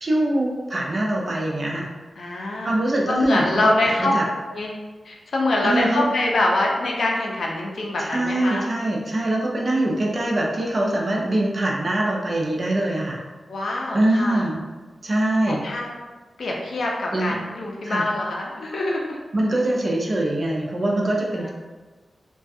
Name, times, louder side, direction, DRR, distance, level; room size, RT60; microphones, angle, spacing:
voice 1, 0.0-1.9 2.6-3.7 4.0-4.3 5.6-6.1 8.0-13.2 13.9-14.6 15.0-15.6 17.1-17.4 17.8-18.0 19.3-21.5, right 1 dB, 40° right, -2 dB, 0.4 m, -23 dB
voice 2, 2.2-2.7 3.1-4.1 4.5-4.7 5.0-8.7 13.5-14.4 15.5-15.9 16.4-19.2 21.4-21.5, left 2 dB, 75° left, -1 dB, 0.5 m, -24 dB
2.4 x 2.2 x 2.6 m, 1.3 s
wide cardioid pair, 160°, 0 cm